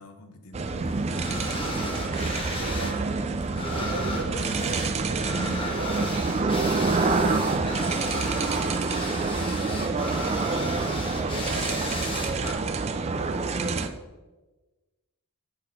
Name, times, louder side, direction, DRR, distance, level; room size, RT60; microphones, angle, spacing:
voice 1, 0.0-1.5 8.0-10.0, left 2 dB, 75° left, 7 dB, 0.8 m, -49 dB
sound 1, 0.5-13.9, right 3 dB, 30° right, 0.3 m, -27 dB
sound 2, 1.1-3.0 3.2-12.5, left 2 dB, 25° left, 0.8 m, -35 dB
voice 2, 2.6-3.3 3.7-7.4 11.4-11.8, right 3 dB, 90° right, 5 dB, 0.8 m, -39 dB
8.3 x 4.2 x 3.9 m, 1.2 s
head